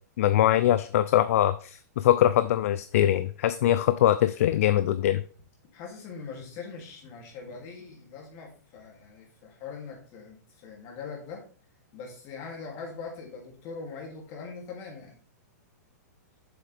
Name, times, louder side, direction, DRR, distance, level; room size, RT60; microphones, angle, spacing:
voice 1, 0.2-5.2, left 12 dB, 55° left, 13 dB, 0.4 m, -22 dB
voice 2, 5.7-11.4 11.9-15.2, left 5 dB, 35° left, 0 dB, 2.9 m, -42 dB
7.1 x 7.1 x 3.5 m, 0.41 s
hypercardioid pair, 160°, 9 cm